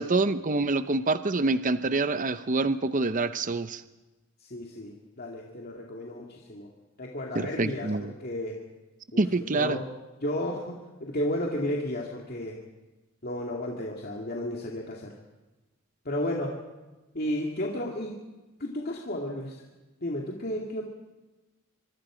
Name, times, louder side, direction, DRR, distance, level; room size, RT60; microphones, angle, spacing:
voice 1, 0.0-3.8 7.3-8.1 9.2-9.8, right 3 dB, 40° right, 12 dB, 0.7 m, -26 dB
voice 2, 4.4-6.7 7.0-8.6 9.1-9.9 10.2-12.6 13.2-15.1 16.0-16.6 17.1-18.1 18.6-19.6 20.0-20.8, left 1 dB, 45° left, -1 dB, 2.4 m, -33 dB
25.0 x 24.0 x 5.1 m, 1.1 s
head